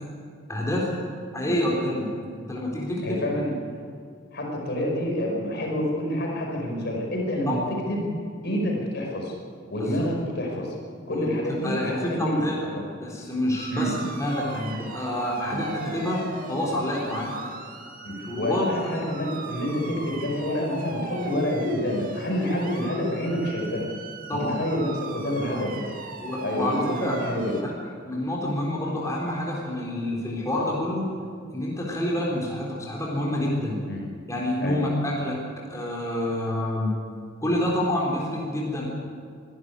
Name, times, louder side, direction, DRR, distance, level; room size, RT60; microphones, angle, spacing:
voice 1, 0.5-0.9 1.3-2.1 2.4-3.3 7.5-7.6 9.8-10.0 11.1-12.6 13.0-17.3 18.3-19.0 24.3-24.6 26.2-27.1 27.6-27.7 28.0-31.1 31.5-33.8 34.3-35.4 35.7-36.9 37.4-38.9, left 1 dB, 15° left, -4 dB, 4.0 m, -28 dB
voice 2, 3.0-3.5 4.3-7.6 7.9-8.1 8.4-9.4 9.7-10.8 11.1-12.8 13.7-13.9 15.4-15.6 18.0-23.8 24.3-25.9 26.4-27.6 33.9-34.0 34.6-34.8, equal, 55° left, -1 dB, 5.4 m, -28 dB
sound 1, 13.5-27.6, right 3 dB, 45° right, 2.1 m, -39 dB
24.5 x 12.0 x 9.7 m, 2.2 s
head